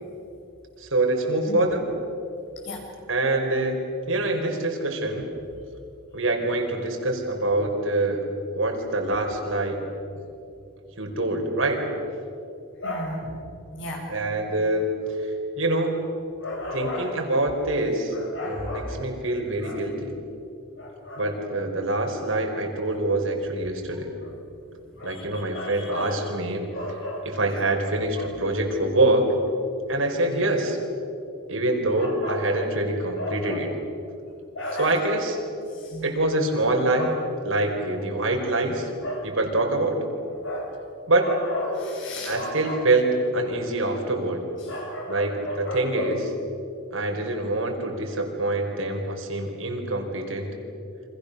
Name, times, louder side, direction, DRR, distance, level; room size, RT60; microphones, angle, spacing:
voice 1, 0.8-1.8 3.1-5.3 6.1-8.2 8.5-9.8 11.0-11.8 14.1-14.9 15.2-15.3 15.6-15.9 16.7-18.1 18.4-20.1 21.2-24.1 25.0-26.7 27.2-29.3 29.9-30.8 31.5-33.7 34.8-35.4 36.0-37.1 37.4-38.9 39.2-40.0 41.1-41.3 42.2-44.4 45.1-46.2 46.9-50.5, right 2 dB, 80° right, 2 dB, 4.6 m, -25 dB
voice 2, 12.8-13.4 13.8-14.0 16.4-17.2 18.1-19.2 19.6-19.8 20.8-21.3 24.2-24.3 24.7-26.2 26.7-27.3 28.2-28.3 32.0-32.6 33.2-33.6 34.5-35.0 35.7-36.1 37.0-37.1 39.0-39.3 40.4-40.8 41.2-42.8 43.4-43.5 44.6-46.2, left 1 dB, 65° left, 0 dB, 7.2 m, -33 dB
29.0 x 25.5 x 6.8 m, 2.7 s
head